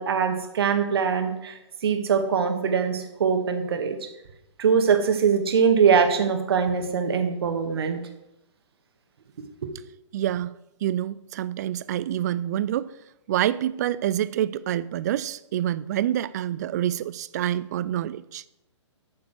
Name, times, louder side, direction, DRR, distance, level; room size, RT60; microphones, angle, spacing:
voice 1, 0.0-1.6 1.8-4.0 4.6-8.0 9.6-9.7, right 6 dB, 50° right, 1.7 m, -22 dB
voice 2, 10.1-10.5 10.8-12.9 13.3-18.5, right 12 dB, 35° right, 0.4 m, -27 dB
9.2 x 7.1 x 6.5 m
figure-of-eight pair, 125°, 16 cm